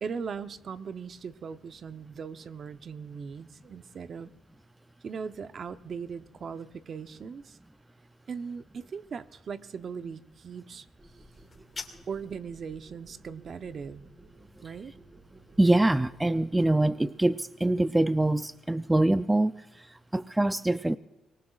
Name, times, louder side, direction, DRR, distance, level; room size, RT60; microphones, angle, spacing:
voice 1, 0.0-4.3 5.0-7.6 8.3-10.9 12.1-14.1 14.6-14.9, right 6 dB, 50° right, 11 dB, 0.7 m, -39 dB
sound 1, 11.0-16.9, right 1 dB, 25° right, 6.5 m, -54 dB
sound 2, 11.3-12.3, left 4 dB, 30° left, 2.0 m, -43 dB
voice 2, 15.6-21.0, right 1 dB, 10° right, 13 dB, 0.4 m, -24 dB
24.5 x 19.5 x 2.4 m, 1.0 s
cardioid pair, 90°, 0 cm